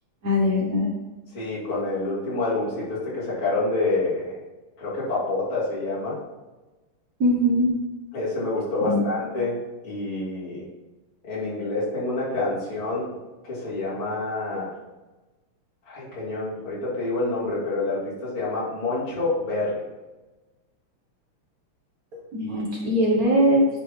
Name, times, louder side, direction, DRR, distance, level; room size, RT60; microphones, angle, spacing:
voice 1, 0.2-0.9 7.2-7.7 8.9-9.0 22.3-23.7, equal, 45° right, -3 dB, 1.5 m, -21 dB
voice 2, 1.3-4.3 4.8-6.2 8.1-10.7 11.2-13.2 13.4-14.7 15.9-19.8 22.4-22.5 22.8-22.9, left 2 dB, 65° left, -9 dB, 3.8 m, -27 dB
9.7 x 3.5 x 5.1 m, 1.1 s
omnidirectional pair, 2.4 m